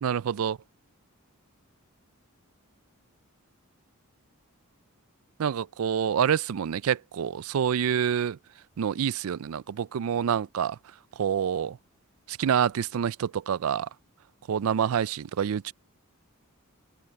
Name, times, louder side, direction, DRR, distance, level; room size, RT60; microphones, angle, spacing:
voice 1, 0.0-0.6 5.4-8.4 8.8-10.8 11.2-11.8 12.3-13.9 14.5-15.7, right 8 dB, 65° right, 0.4 m, -27 dB
open air
head